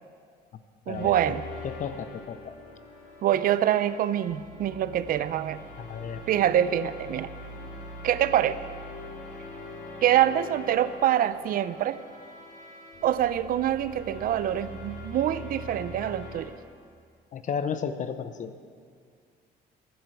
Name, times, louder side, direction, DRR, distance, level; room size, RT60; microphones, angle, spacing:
sound 1, 0.9-16.4, left 1 dB, 85° left, 4.7 m, -43 dB
voice 1, 0.9-1.4 3.2-5.6 6.3-7.3 8.0-8.6 10.0-12.0 13.0-16.5, right 11 dB, 60° right, 14 dB, 0.5 m, -25 dB
voice 2, 1.6-2.5 5.8-6.2 17.3-18.5, left 7 dB, 50° left, 11 dB, 0.8 m, -33 dB
14.5 x 13.5 x 4.8 m, 2.1 s
cardioid pair, 110°, 17 cm